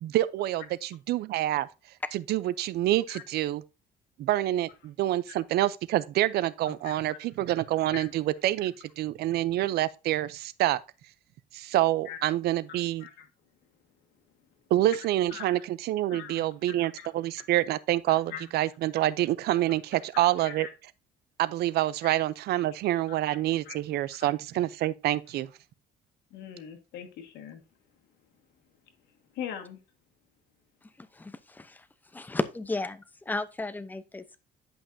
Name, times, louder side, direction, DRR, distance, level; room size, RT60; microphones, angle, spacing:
voice 1, 0.0-1.7 2.1-3.6 4.2-10.8 11.5-13.0 14.7-20.7 21.4-25.5, right 14 dB, 75° right, 0.6 m, -27 dB
voice 2, 6.7-7.2 7.9-8.1 12.1-12.2 12.7-13.3 15.3-15.6 16.1-17.1 17.4-17.5 18.1-18.5 19.9-20.0 20.4-20.7 22.0-22.1 23.1-23.2 23.6-23.8 26.3-27.6 29.3-29.8, left 8 dB, 80° left, 1.8 m, -42 dB
voice 3, 31.0-31.8 32.1-34.4, left 2 dB, 10° left, 0.7 m, -34 dB
10.5 x 5.6 x 2.7 m
cardioid pair, 110°, 17 cm